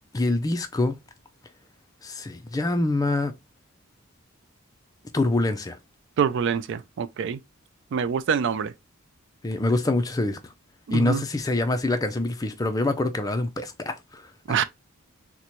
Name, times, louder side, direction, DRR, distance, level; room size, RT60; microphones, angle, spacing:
voice 1, 0.1-0.9 2.0-3.3 5.1-5.8 9.4-10.4 10.9-14.2 14.5-14.6, left 2 dB, 15° left, 0.4 m, -25 dB
voice 2, 6.2-7.4 7.9-8.7 10.9-11.2 14.5-14.6, right 7 dB, 60° right, 0.3 m, -25 dB
4.1 x 2.2 x 3.0 m
head